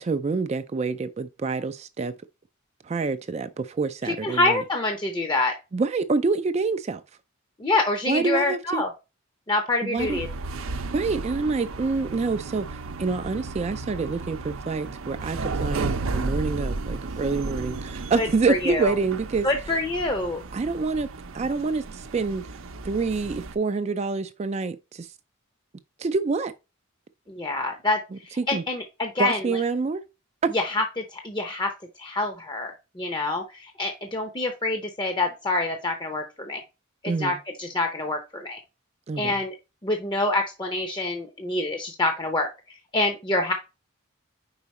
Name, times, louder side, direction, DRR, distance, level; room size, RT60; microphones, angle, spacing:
voice 1, 0.0-2.1 2.8-4.6 5.7-7.0 8.1-8.8 9.8-10.2 10.9-19.5 20.5-21.1 21.3-22.6 22.8-25.1 26.0-26.5 28.1-28.6 29.2-30.0 30.4-30.5 37.1-37.4 39.1-39.3, right 4 dB, 30° right, 0.3 m, -27 dB
voice 2, 4.0-5.5 7.6-8.9 9.5-10.3 18.1-18.9 19.4-20.4 27.3-28.0 28.2-29.4 30.5-31.7 32.0-36.6 37.2-38.6 39.2-39.5 39.8-42.5 42.9-43.5, left 2 dB, 20° left, 0.6 m, -26 dB
Cargo Lift Elevator Ambience, 10.0-23.6, right 3 dB, 75° right, 0.6 m, -34 dB
4.9 x 4.7 x 4.1 m
head